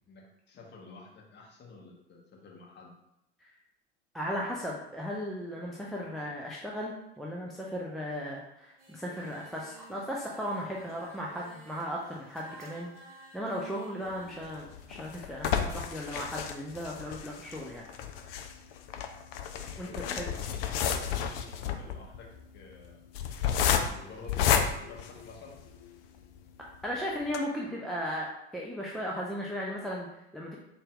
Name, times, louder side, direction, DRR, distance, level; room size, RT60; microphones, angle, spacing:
voice 1, 0.1-2.9 19.8-23.0 23.8-24.6 24.9-25.6, left 4 dB, 30° left, -1 dB, 1.2 m, -50 dB
voice 2, 4.1-12.9 13.3-17.9 19.8-20.3 26.6-30.6, equal, ahead, -4 dB, 0.4 m, -36 dB
Singing, 8.8-14.4, right 2 dB, 80° right, 1.0 m, -53 dB
sound 1, 14.4-25.8 26.4-26.5 26.7-26.8 27.2-27.4, left 8 dB, 55° left, 0.5 m, -31 dB
3.9 x 2.5 x 3.8 m, 0.84 s
figure-of-eight pair, 80°, 35 cm